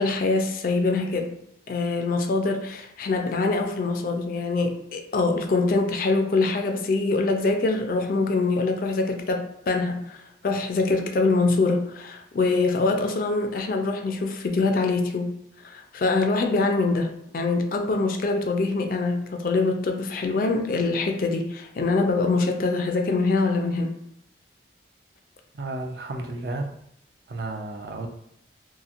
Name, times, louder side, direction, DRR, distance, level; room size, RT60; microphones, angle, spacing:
voice 1, 0.0-1.4 1.7-24.0, left 3 dB, 50° left, 0.3 m, -24 dB
voice 2, 25.5-26.7 27.3-28.1, right 2 dB, 55° right, 0.4 m, -32 dB
2.8 x 2.4 x 2.4 m
head